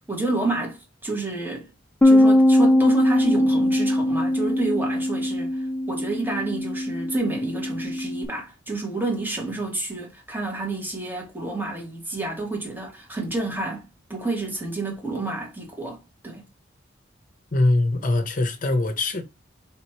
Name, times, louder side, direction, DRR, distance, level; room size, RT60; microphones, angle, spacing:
voice 1, 0.1-1.7 2.0-16.4, right 2 dB, 10° right, 1.3 m, -29 dB
Bass guitar, 2.0-8.3, left 1 dB, 10° left, 0.3 m, -21 dB
voice 2, 17.5-19.2, left 2 dB, 45° left, 0.7 m, -22 dB
3.5 x 2.9 x 4.4 m
head